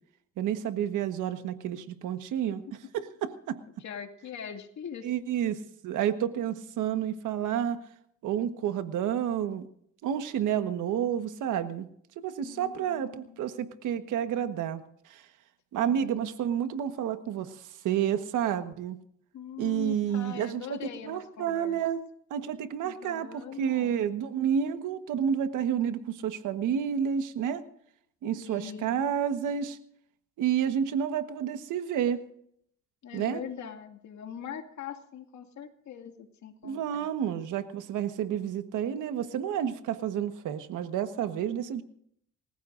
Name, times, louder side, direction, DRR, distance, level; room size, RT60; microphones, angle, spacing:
voice 1, 0.4-2.6 2.9-3.6 5.0-7.8 8.2-9.6 10.0-11.9 12.2-15.2 15.7-19.0 19.6-22.0 22.3-27.6 28.2-29.8 30.4-32.2 33.1-33.4 36.6-41.8, right 9 dB, 85° right, 9 dB, 1.4 m, -30 dB
voice 2, 3.8-5.1 12.4-13.5 15.8-16.2 19.3-21.8 22.8-24.0 28.4-29.0 33.0-37.1, left 8 dB, 65° left, 5 dB, 2.3 m, -42 dB
27.0 x 15.0 x 2.6 m, 0.68 s
cardioid pair, 90°, 30 cm